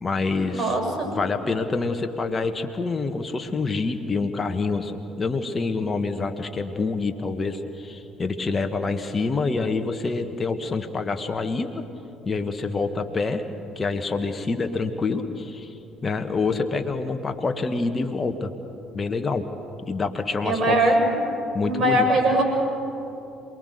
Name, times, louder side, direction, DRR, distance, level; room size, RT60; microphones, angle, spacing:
voice 1, 0.0-0.8 1.0-11.8 12.3-13.4 13.8-15.7 16.0-18.5 18.9-19.5 19.8-20.8 21.5-22.1, left 3 dB, 25° left, 7 dB, 1.6 m, -26 dB
voice 2, 0.6-1.1 20.4-21.1 21.6-22.4, right 1 dB, 45° right, 3 dB, 7.2 m, -21 dB
28.0 x 20.5 x 6.7 m, 2.9 s
figure-of-eight pair, 50°, 0 cm